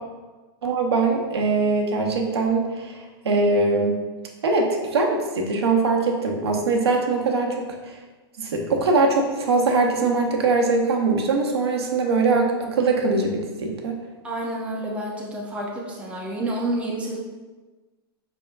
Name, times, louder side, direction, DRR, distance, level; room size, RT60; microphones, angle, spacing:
voice 1, 0.6-3.0 3.2-4.0 4.4-7.9 8.4-13.9, right 3 dB, 85° right, 1 dB, 0.7 m, -22 dB
voice 2, 14.2-17.2, right 1 dB, 10° right, -3 dB, 0.7 m, -29 dB
4.9 x 3.5 x 2.3 m, 1.3 s
hypercardioid pair, 120°, 13 cm